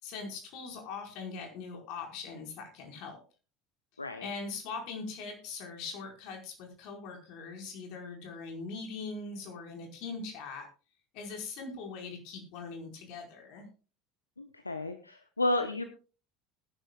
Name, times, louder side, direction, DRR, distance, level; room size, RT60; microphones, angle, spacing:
voice 1, 0.0-3.2 4.2-10.7 11.1-13.7, left 4 dB, 55° left, 3 dB, 4.9 m, -41 dB
voice 2, 4.0-4.3 14.4-15.8, left 1 dB, 85° left, 9 dB, 0.9 m, -32 dB
20.5 x 11.0 x 2.4 m, 0.35 s
figure-of-eight pair, 70°, 0 cm